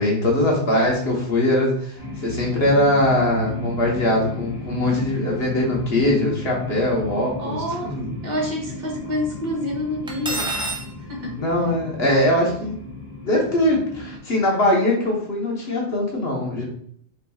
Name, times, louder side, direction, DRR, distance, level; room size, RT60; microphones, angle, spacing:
voice 1, 0.0-2.0 2.2-7.6 7.8-8.1 11.4-12.8 13.2-16.6, left 1 dB, 65° left, -2 dB, 1.4 m, -21 dB
sound 1, 2.0-14.2, left 3 dB, 80° left, 1.8 m, -35 dB
voice 2, 7.4-7.9 8.2-10.5 11.0-11.4, left 1 dB, 60° right, -2 dB, 1.6 m, -28 dB
Cutlery silverware, 10.1-10.9, right 2 dB, 10° right, 0.3 m, -27 dB
4.2 x 4.2 x 2.3 m, 0.63 s
omnidirectional pair, 1.1 m